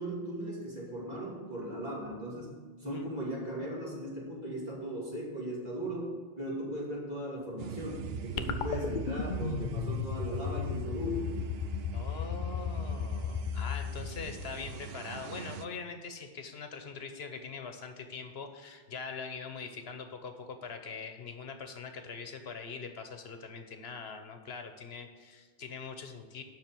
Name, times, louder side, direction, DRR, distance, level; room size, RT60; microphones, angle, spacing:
voice 1, 0.0-2.5 2.8-11.3 14.1-14.3, equal, 40° right, -5 dB, 2.9 m, -38 dB
sound 1, 7.6-15.7, right 8 dB, 75° right, 0.8 m, -42 dB
sound 2, 8.4-14.9, left 7 dB, 55° left, 0.7 m, -35 dB
voice 2, 11.9-26.4, left 5 dB, 80° left, 6 dB, 1.2 m, -42 dB
7.5 x 6.1 x 7.6 m, 1.4 s
omnidirectional pair, 1.0 m